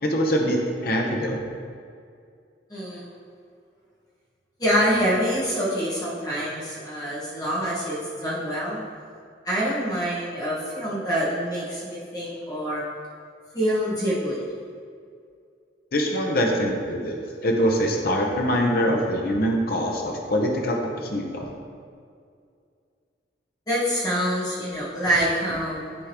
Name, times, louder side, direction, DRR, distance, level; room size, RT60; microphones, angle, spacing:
voice 1, 0.0-1.4 15.9-21.5, equal, 55° left, 1 dB, 0.8 m, -24 dB
voice 2, 2.7-3.1 4.6-8.8 9.4-12.8 13.5-14.5 23.7-25.9, equal, 20° left, -9 dB, 1.5 m, -26 dB
9.9 x 3.7 x 3.0 m, 2.3 s
head